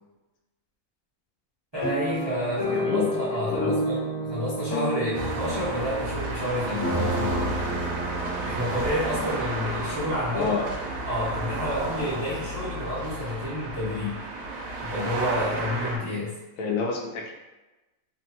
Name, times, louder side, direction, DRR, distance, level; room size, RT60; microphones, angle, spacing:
voice 1, 1.7-7.4 8.4-10.6 11.0-14.2 14.8-16.3, left 1 dB, 35° right, -10 dB, 0.4 m, -30 dB
sound 1, 1.8-9.9 10.5-10.6 10.9-11.1, equal, 35° left, 1.0 m, -31 dB
voice 2, 2.6-3.1 3.4-3.8 10.3-10.6 16.6-17.3, left 5 dB, 90° left, 0 dB, 1.1 m, -29 dB
sound 2, 5.1-16.0, right 2 dB, 70° right, 1.0 m, -32 dB
2.9 x 2.2 x 2.8 m, 1.1 s
omnidirectional pair, 1.6 m